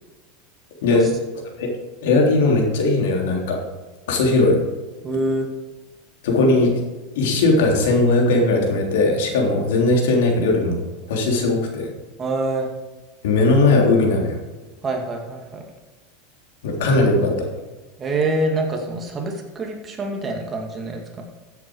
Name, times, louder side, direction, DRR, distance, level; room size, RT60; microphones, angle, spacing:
voice 1, 2.0-3.6 4.1-4.6 6.2-6.7 7.2-10.8 11.1-11.9 13.2-14.4 16.6-17.5, left 2 dB, 80° left, 0 dB, 3.5 m, -18 dB
voice 2, 5.0-5.5 12.2-12.7 14.8-15.6 18.0-21.2, right 2 dB, 20° right, 1 dB, 2.2 m, -25 dB
14.5 x 8.2 x 4.8 m, 1.2 s
supercardioid pair, 140°, 0 cm